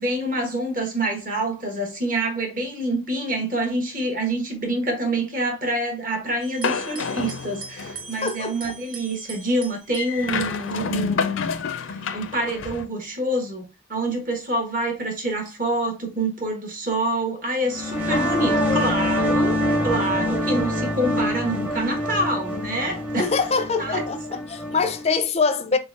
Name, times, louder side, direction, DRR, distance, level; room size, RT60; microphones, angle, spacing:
voice 1, 0.0-11.4 11.7-13.6 13.9-19.6 19.8-23.3 23.8-24.0, right 1 dB, 45° right, 1.2 m, -26 dB
sound 1, 6.4-11.1 12.0-12.4 13.1-13.2 15.4-15.9, right 5 dB, 85° right, 1.1 m, -42 dB
sound 2, 6.6-8.1 10.0-12.8, left 5 dB, 85° left, 0.5 m, -28 dB
voice 2, 8.2-8.8 18.1-18.9 23.2-25.8, left 4 dB, 30° left, 0.4 m, -25 dB
sound 3, 17.7-25.0, equal, 10° right, 0.7 m, -25 dB
4.1 x 3.8 x 2.4 m
head